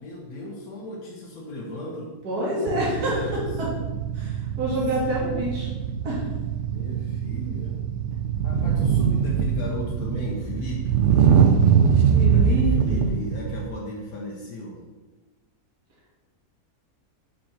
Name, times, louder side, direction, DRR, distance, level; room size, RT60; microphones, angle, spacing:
voice 1, 0.0-2.1 2.5-3.8 4.9-5.3 6.7-7.8 8.4-11.0 12.3-14.8, left 1 dB, 70° left, -4 dB, 1.6 m, -36 dB
voice 2, 2.2-3.2 4.1-5.7 6.0-6.2 12.1-13.1, right 1 dB, 80° right, -6 dB, 2.4 m, -27 dB
sound 1, 2.7-13.6, right 7 dB, 65° right, 0.8 m, -22 dB
6.0 x 4.4 x 6.4 m, 1.2 s
omnidirectional pair, 1.6 m